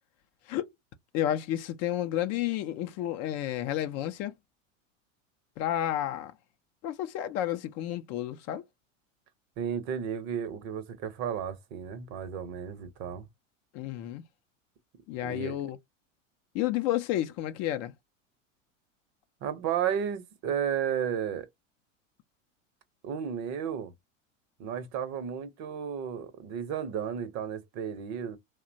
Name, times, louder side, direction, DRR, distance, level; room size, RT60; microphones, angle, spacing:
voice 1, 1.1-4.3 5.6-6.3 6.8-8.6 13.7-14.2 15.1-15.8 16.5-17.9, left 12 dB, 40° left, 0.5 m, -31 dB
voice 2, 9.6-13.3 15.2-15.6 19.4-21.5 23.0-23.9 24.6-28.4, right 8 dB, 45° right, 0.8 m, -33 dB
2.7 x 2.1 x 2.5 m
hypercardioid pair, 95°, 39 cm